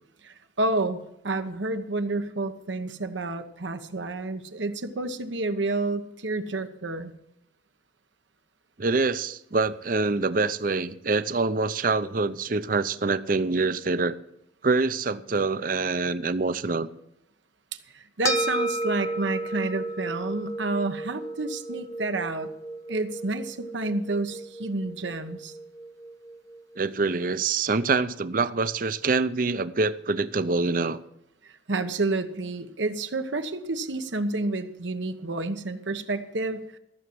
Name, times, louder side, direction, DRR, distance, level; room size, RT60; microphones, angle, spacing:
voice 1, 0.2-7.1 17.9-22.5 22.9-25.5 31.7-36.8, right 2 dB, 85° right, 9 dB, 1.1 m, -29 dB
voice 2, 8.8-14.2 14.6-16.9 26.8-31.0, right 3 dB, 50° right, 15 dB, 0.6 m, -25 dB
sound 1, 18.2-26.8, right 1 dB, 20° left, 0.9 m, -33 dB
14.5 x 7.1 x 7.8 m, 0.81 s
head